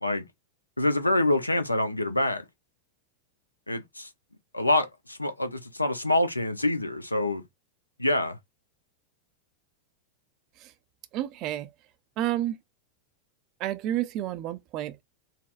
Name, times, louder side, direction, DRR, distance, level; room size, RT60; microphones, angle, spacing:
voice 1, 0.8-2.4 3.7-4.1 4.5-7.4 8.0-8.4, left 1 dB, 85° left, 0.5 m, -26 dB
voice 2, 11.1-11.7 12.2-12.6 13.6-15.0, right 13 dB, 40° right, 0.3 m, -30 dB
4.1 x 2.0 x 2.4 m
figure-of-eight pair, 90°, 0 cm